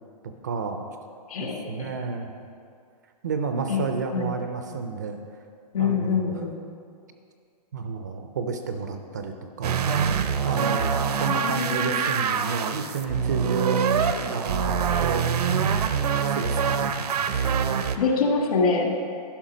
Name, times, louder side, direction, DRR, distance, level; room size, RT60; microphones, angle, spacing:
voice 1, 0.4-0.9 1.4-2.3 3.2-5.2 5.8-6.4 7.7-9.8 10.4-13.8 14.2-15.3 16.3-17.8, right 5 dB, 25° right, 6 dB, 0.4 m, -31 dB
voice 2, 1.3-1.9 3.7-3.8 4.1-4.3 5.7-6.6 11.0-12.0 18.0-19.0, left 4 dB, 60° left, 1 dB, 1.5 m, -25 dB
sound 1, 9.6-18.0, right 7 dB, 65° right, 0.6 m, -25 dB
11.5 x 5.6 x 5.0 m, 2.3 s
hypercardioid pair, 175°, 21 cm